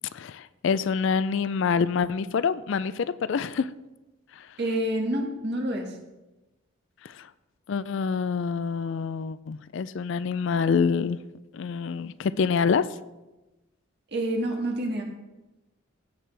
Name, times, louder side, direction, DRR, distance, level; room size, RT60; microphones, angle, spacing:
voice 1, 0.1-3.7 4.4-4.5 7.0-7.3 7.7-11.2 11.5-12.9, left 6 dB, 60° left, 16 dB, 0.3 m, -26 dB
voice 2, 4.6-6.0 14.1-15.0, right 1 dB, 50° right, 1 dB, 1.8 m, -28 dB
16.5 x 7.8 x 3.3 m, 1.0 s
head